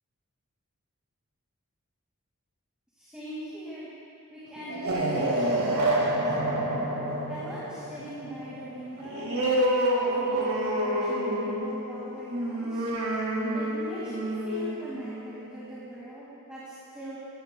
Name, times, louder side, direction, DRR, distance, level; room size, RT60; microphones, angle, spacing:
voice 1, 3.0-3.9 4.3-6.7 7.3-12.9 13.5-17.2, right 1 dB, 5° right, -11 dB, 2.0 m, -41 dB
sound 1, 4.6-15.8, right 1 dB, 80° right, 1.7 m, -28 dB
15.0 x 13.5 x 2.2 m, 2.6 s
head